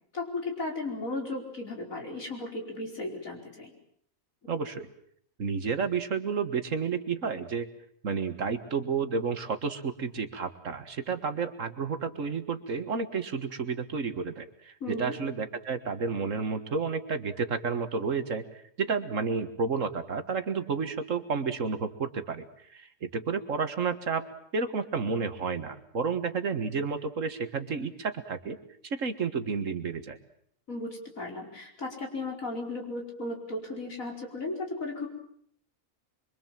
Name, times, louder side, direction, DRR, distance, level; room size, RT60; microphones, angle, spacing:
voice 1, 0.1-3.7 14.8-15.1 30.7-35.1, left 2 dB, 75° left, 1 dB, 5.4 m, -35 dB
voice 2, 4.5-4.9 5.4-7.7 8.0-24.3 24.5-28.6 28.8-30.2, right 5 dB, 65° right, 9 dB, 2.0 m, -31 dB
25.0 x 24.5 x 7.5 m, 0.68 s
omnidirectional pair, 1.4 m